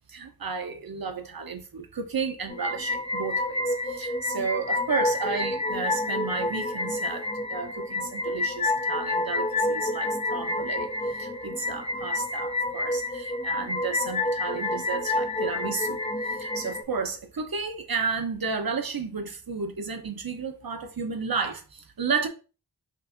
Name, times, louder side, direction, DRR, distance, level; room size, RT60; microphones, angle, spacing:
voice 1, 0.1-16.0 16.2-22.3, right 5 dB, 55° right, 0.8 m, -32 dB
sound 1, 2.5-16.8, left 2 dB, 15° left, 0.4 m, -29 dB
5.3 x 2.6 x 2.6 m
wide cardioid pair, 45°, 41 cm